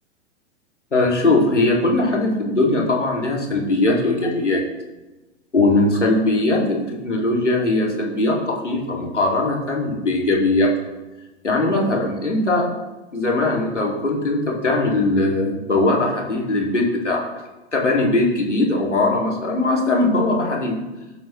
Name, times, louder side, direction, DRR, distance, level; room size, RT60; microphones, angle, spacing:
voice 1, 0.9-4.6 5.5-10.7 11.4-12.7 13.1-17.3 17.7-20.8, left 2 dB, 85° left, -1 dB, 2.4 m, -20 dB
17.5 x 7.5 x 3.1 m, 1.1 s
figure-of-eight pair, 100°, 35 cm